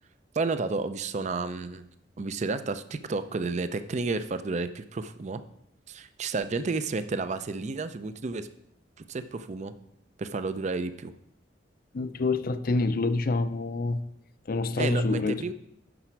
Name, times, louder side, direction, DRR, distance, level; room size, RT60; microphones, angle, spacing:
voice 1, 0.3-1.8 2.2-5.4 5.9-8.5 9.1-9.7 10.2-11.1 14.8-15.5, right 3 dB, 40° right, 11 dB, 0.4 m, -31 dB
voice 2, 11.9-14.0 14.5-15.4, left 3 dB, 50° left, 13 dB, 0.5 m, -27 dB
10.0 x 5.9 x 4.5 m, 0.79 s
head